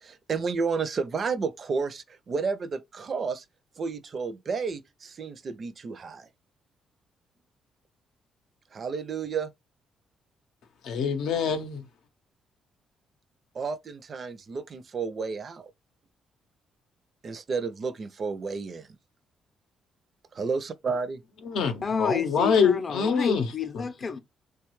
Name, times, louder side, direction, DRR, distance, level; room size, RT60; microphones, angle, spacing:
voice 1, 0.0-3.4 3.8-6.3 8.7-9.5 13.5-15.7 17.2-18.9 20.3-21.2, right 5 dB, 45° right, 0.4 m, -31 dB
voice 2, 10.8-11.8 21.4-23.5, left 6 dB, 80° left, 0.6 m, -25 dB
voice 3, 21.8-24.2, left 5 dB, 40° left, 0.5 m, -30 dB
3.0 x 2.3 x 3.0 m
cardioid pair, 90°, 0 cm